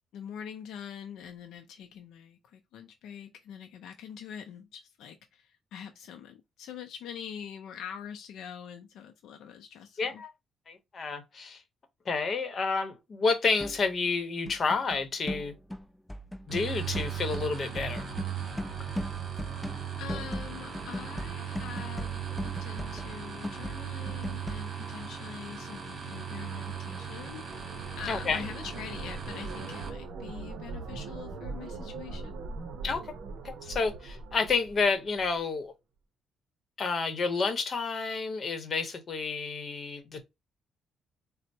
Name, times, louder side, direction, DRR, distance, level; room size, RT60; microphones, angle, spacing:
voice 1, 0.1-10.2 20.0-32.3, left 8 dB, 85° left, 0.4 m, -44 dB
voice 2, 10.0-10.3 10.7-11.6 12.0-15.5 16.5-18.1 28.1-28.5 32.8-33.1 33.4-35.7 36.8-40.2, left 4 dB, 45° left, 0.8 m, -30 dB
sound 1, 13.6-14.1 14.5-24.7, equal, 10° left, 0.3 m, -39 dB
sound 2, 16.5-29.9, right 8 dB, 40° right, 1.3 m, -38 dB
sound 3, 26.4-35.4, right 3 dB, 75° right, 0.6 m, -42 dB
4.2 x 2.0 x 2.7 m
cardioid pair, 90°, 0 cm